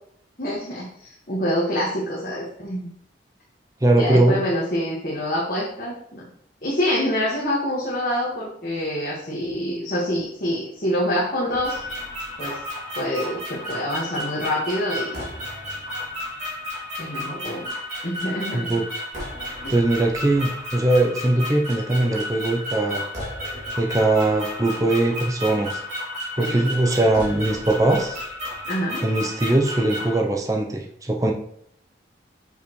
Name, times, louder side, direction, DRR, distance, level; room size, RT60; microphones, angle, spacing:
voice 1, 0.4-2.9 3.9-6.2 6.6-11.8 12.4-12.6 13.0-15.2 17.0-17.7 18.0-18.7 19.6-19.8 26.4-26.7 28.6-29.0, equal, 50° left, -6 dB, 1.4 m, -26 dB
voice 2, 3.8-4.4 18.5-18.8 19.7-23.0 23.8-25.8 26.4-28.2 29.0-31.3, right 2 dB, 20° right, 2 dB, 0.6 m, -21 dB
sound 1, 11.5-30.1, left 1 dB, 40° right, 2.3 m, -33 dB
6.4 x 5.6 x 3.1 m, 0.68 s
head